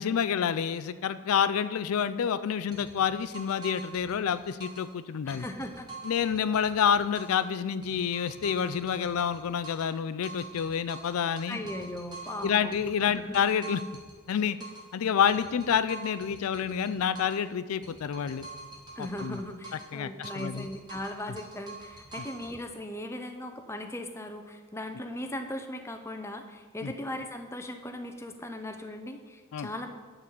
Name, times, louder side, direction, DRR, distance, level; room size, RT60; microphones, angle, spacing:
voice 1, 0.0-5.5 6.0-11.6 12.4-13.8 14.3-14.6 14.9-18.5 19.0-19.4 19.9-20.7 26.8-26.9 29.5-29.7, left 7 dB, 80° left, 13 dB, 0.4 m, -28 dB
sound 1, 2.7-4.9 5.3-7.5 7.8-10.0 10.2-14.9 15.3-17.5 17.8-20.0 20.2-22.5, right 3 dB, 20° right, 1.6 m, -46 dB
voice 2, 5.3-5.9 11.5-12.7 13.0-13.4 19.0-29.9, left 1 dB, 10° left, 6 dB, 0.6 m, -38 dB
11.0 x 4.0 x 7.4 m, 1.5 s
head